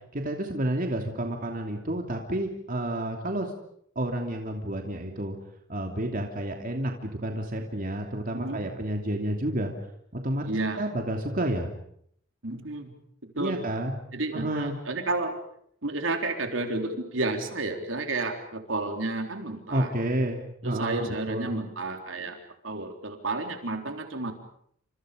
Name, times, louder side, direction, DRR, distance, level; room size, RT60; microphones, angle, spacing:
voice 1, 0.1-3.5 3.9-5.4 5.7-9.7 10.1-10.4 10.8-11.7 13.4-13.9 14.3-14.7 19.7-21.5, right 1 dB, 45° right, 3 dB, 2.9 m, -30 dB
voice 2, 8.3-8.7 10.4-10.8 12.4-12.9 13.2-13.6 14.1-15.3 15.8-19.9 20.6-22.4 22.6-24.3, right 2 dB, 75° right, 5 dB, 3.8 m, -31 dB
29.5 x 27.5 x 5.2 m, 0.66 s
head